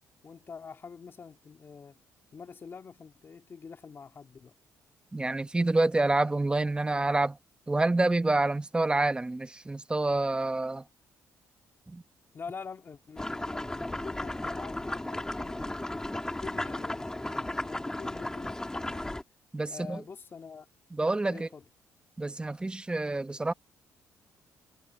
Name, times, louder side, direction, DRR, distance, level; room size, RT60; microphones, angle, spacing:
voice 1, 0.2-2.0 2.3-4.5 12.3-16.0 16.4-19.2 19.7-20.7 21.3-21.6, left 5 dB, 40° left, 2.7 m, -45 dB
voice 2, 5.1-7.4 7.7-10.8 11.9-12.0 19.5-20.0 20.9-21.5 22.2-23.5, right 2 dB, 15° right, 1.1 m, -27 dB
sound 1, 13.2-19.2, left 1 dB, 10° left, 2.4 m, -35 dB
cardioid pair, 95°, 6 cm